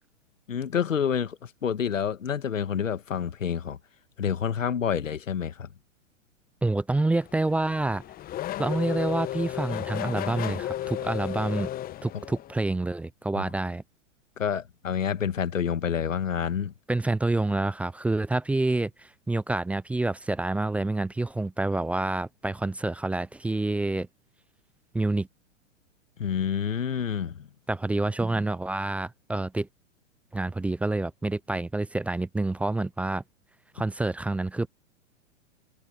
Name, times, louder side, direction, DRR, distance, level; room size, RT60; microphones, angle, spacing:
voice 1, 0.5-3.8 4.2-5.7 13.3-13.4 14.4-16.7 26.2-27.5, left 8 dB, 85° left, 1.9 m, -28 dB
voice 2, 6.6-8.0 8.6-11.7 12.0-13.8 16.9-24.1 24.9-25.3 27.7-29.7 30.3-33.2 33.7-34.7, right 2 dB, 5° right, 0.5 m, -28 dB
Race car auto racing / Accelerating revving vroom, 7.1-12.7, left 13 dB, 25° left, 1.0 m, -34 dB
hypercardioid pair, 115°, 38 cm